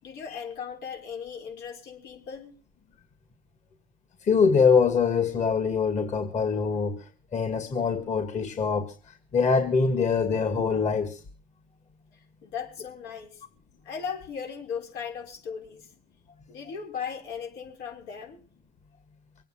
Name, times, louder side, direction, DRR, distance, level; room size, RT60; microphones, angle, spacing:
voice 1, 0.0-2.5 12.4-13.4 13.8-15.9 16.5-18.4, left 7 dB, 85° left, 6.0 m, -37 dB
voice 2, 4.2-7.0 7.3-8.9 9.3-11.2, left 5 dB, 45° left, 2.2 m, -23 dB
24.0 x 9.1 x 5.8 m
cardioid pair, 110°, 17 cm